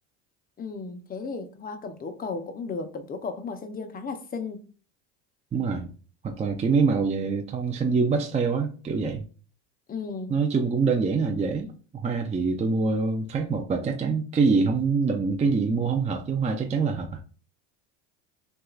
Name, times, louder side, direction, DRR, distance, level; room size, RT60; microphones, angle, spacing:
voice 1, 0.6-4.6 9.9-10.4, left 4 dB, 25° left, 0.6 m, -35 dB
voice 2, 5.5-5.9 6.2-9.3 10.3-17.2, right 4 dB, 20° right, 0.5 m, -25 dB
6.2 x 2.3 x 2.4 m
supercardioid pair, 100°, 36 cm